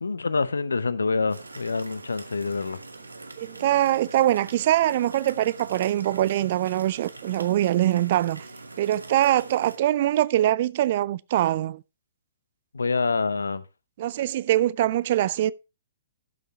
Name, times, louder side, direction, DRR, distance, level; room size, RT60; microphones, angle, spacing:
voice 1, 0.0-2.8 12.7-13.6, left 4 dB, 70° left, 0.7 m, -26 dB
sound 1, 1.3-9.8, right 3 dB, 75° right, 1.2 m, -43 dB
voice 2, 3.4-8.4 8.8-11.8 14.0-15.5, right 13 dB, 45° right, 0.4 m, -23 dB
12.0 x 6.5 x 2.8 m
figure-of-eight pair, 120°, 0 cm